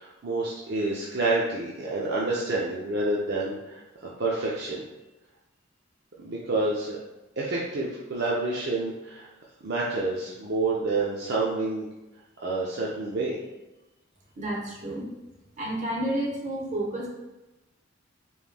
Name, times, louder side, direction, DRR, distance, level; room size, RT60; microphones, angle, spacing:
voice 1, 0.0-4.8 6.2-7.0 7.4-9.3 9.6-11.8 12.4-13.4, right 2 dB, 55° right, -5 dB, 0.5 m, -28 dB
voice 2, 14.4-15.1 15.6-17.1, right 1 dB, 35° right, -2 dB, 0.9 m, -30 dB
5.2 x 3.1 x 2.2 m, 1.0 s
head